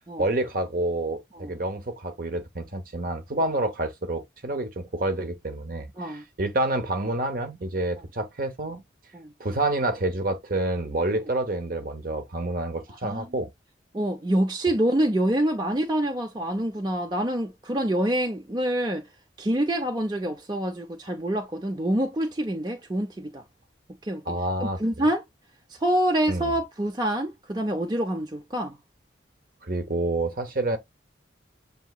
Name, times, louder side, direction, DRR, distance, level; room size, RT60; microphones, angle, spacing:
voice 1, 0.2-8.8 9.4-13.5 24.3-25.1 26.3-26.5 29.6-30.8, right 2 dB, 45° right, 0.8 m, -28 dB
voice 2, 13.9-19.0 19.4-23.4 24.0-24.2 24.6-25.2 25.7-28.8, right 1 dB, 20° right, 0.5 m, -26 dB
6.9 x 2.8 x 2.3 m
head